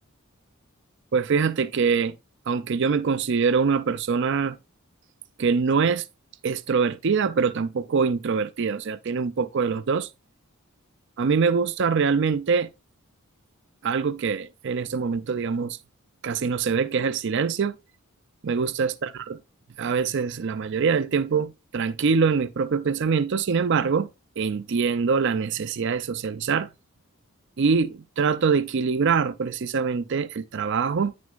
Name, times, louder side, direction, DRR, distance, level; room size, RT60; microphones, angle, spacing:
voice 1, 1.1-2.2 2.5-4.6 5.4-6.0 6.4-10.1 11.2-12.7 13.8-15.8 16.2-17.7 18.4-19.1 19.8-24.1 24.4-26.7 27.6-31.1, right 5 dB, 55° right, 0.4 m, -24 dB
9.8 x 6.3 x 2.4 m
head